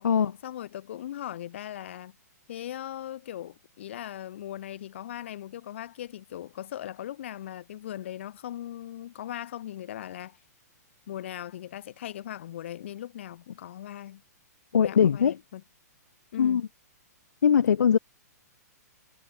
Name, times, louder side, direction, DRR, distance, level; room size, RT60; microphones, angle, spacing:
voice 1, 0.4-2.1 2.5-10.4 11.1-14.2 14.7-15.6 16.3-16.6, left 12 dB, 45° left, 3.3 m, -39 dB
voice 2, 14.7-15.4 16.4-16.6 17.4-18.0, left 7 dB, 75° left, 2.6 m, -21 dB
hypercardioid pair, 175°, 9 cm